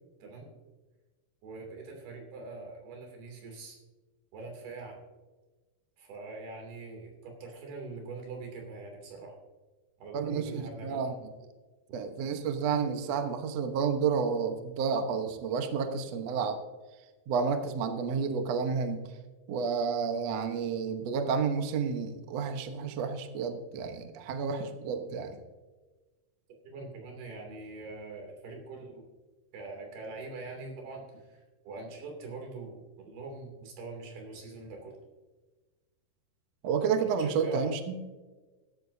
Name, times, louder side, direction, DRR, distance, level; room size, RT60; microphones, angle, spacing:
voice 1, 1.4-3.8 4.3-5.0 6.0-9.4 10.0-11.1 26.6-29.1 29.5-35.0 37.0-37.7, right 3 dB, 85° right, 2 dB, 4.8 m, -43 dB
voice 2, 10.1-11.1 11.9-16.6 17.3-19.1 19.5-25.4 36.6-38.0, right 6 dB, 65° right, 6 dB, 1.7 m, -30 dB
15.5 x 13.0 x 2.7 m, 1.2 s
omnidirectional pair, 4.4 m